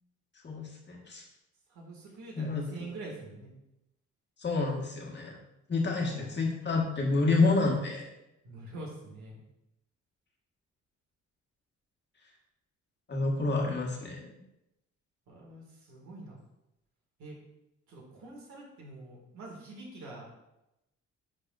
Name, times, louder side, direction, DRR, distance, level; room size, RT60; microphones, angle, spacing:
voice 1, 0.4-1.2 2.3-2.6 4.4-5.4 5.7-8.1 13.1-14.4, left 3 dB, 35° left, -1 dB, 1.7 m, -29 dB
voice 2, 1.7-3.5 6.0-6.4 8.4-9.4 15.3-16.4 17.2-17.3 17.9-20.3, right 2 dB, 75° right, -2 dB, 2.2 m, -45 dB
10.0 x 4.1 x 2.6 m, 0.89 s
cardioid pair, 90°, 30 cm